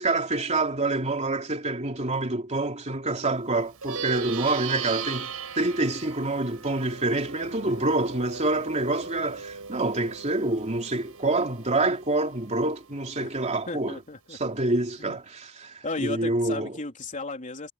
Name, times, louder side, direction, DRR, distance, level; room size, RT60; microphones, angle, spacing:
voice 1, 0.0-14.0 14.3-16.8, right 2 dB, 30° right, 3.1 m, -27 dB
Plucked string instrument, 3.7-13.4, right 6 dB, 80° right, 5.1 m, -38 dB
voice 2, 13.7-14.4 15.0-15.2 15.8-17.7, left 2 dB, 35° left, 3.7 m, -34 dB
head